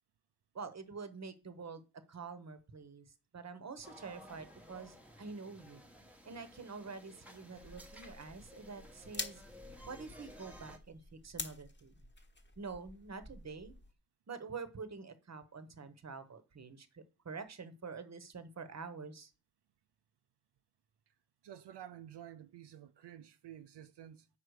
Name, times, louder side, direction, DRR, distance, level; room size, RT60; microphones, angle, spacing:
voice 1, 0.5-1.8 2.1-3.1 3.3-5.8 6.2-9.4 9.8-11.9 12.6-13.7 14.3-19.3, right 4 dB, 40° right, 1.0 m, -47 dB
sound 1, 3.8-10.8, equal, 5° right, 1.0 m, -55 dB
sound 2, 7.6-13.9, left 3 dB, 25° left, 1.1 m, -48 dB
voice 2, 21.4-24.3, right 10 dB, 85° right, 0.6 m, -51 dB
7.8 x 5.7 x 4.8 m
wide cardioid pair, 125°, 41 cm